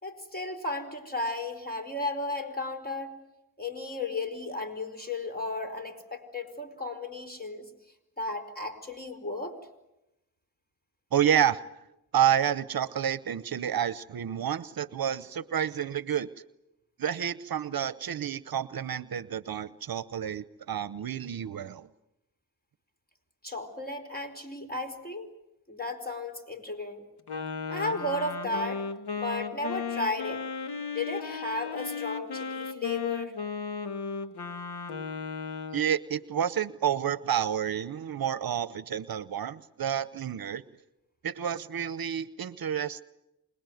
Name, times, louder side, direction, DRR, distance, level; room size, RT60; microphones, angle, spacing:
voice 1, 0.0-3.1 3.6-7.7 8.2-9.6 23.4-25.3 25.7-27.0 27.7-28.8 29.2-30.4 30.9-33.3, left 2 dB, 25° left, 6 dB, 4.6 m, -34 dB
voice 2, 11.1-11.6 12.1-16.3 17.0-21.9 35.7-40.6 41.2-43.0, right 9 dB, 65° right, 16 dB, 0.9 m, -29 dB
Wind instrument woodwind instrument, 27.3-35.9, left 5 dB, 80° left, 1.8 m, -35 dB
26.5 x 20.5 x 9.3 m, 0.91 s
cardioid pair, 75°, 39 cm